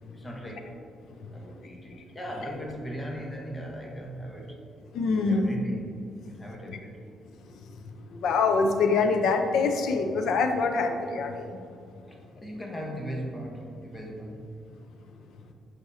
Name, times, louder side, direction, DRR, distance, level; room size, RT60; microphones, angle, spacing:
voice 1, 0.1-0.7 1.3-4.6 5.3-5.9 6.3-7.1 12.1-14.5, equal, 20° left, 0 dB, 1.1 m, -38 dB
voice 2, 1.1-1.7 4.9-5.6 6.3-6.4 6.6-6.8 7.5-7.7 8.1-11.6, left 4 dB, 75° left, 5 dB, 0.6 m, -26 dB
6.4 x 6.0 x 2.7 m, 2.5 s
cardioid pair, 90°, 0 cm